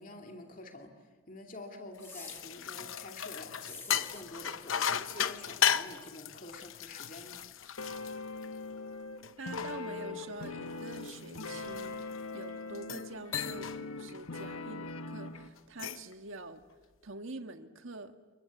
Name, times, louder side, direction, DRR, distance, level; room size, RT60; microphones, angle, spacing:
voice 1, 0.0-7.4, left 1 dB, 40° left, 3 dB, 2.5 m, -48 dB
sound 1, 2.0-8.8 9.2-12.2 12.7-13.1 13.3-13.8 14.1-14.4 15.6-16.1, left 9 dB, 70° left, 0.9 m, -35 dB
sound 2, 2.0-2.5 3.6-4.2, left 3 dB, 10° left, 1.5 m, -47 dB
sound 3, 7.8-15.5, left 3 dB, 85° left, 1.3 m, -41 dB
voice 2, 9.4-12.1 12.3-16.6 17.0-18.1, right 2 dB, 70° right, 7 dB, 1.6 m, -45 dB
29.5 x 22.5 x 8.3 m, 1.3 s
head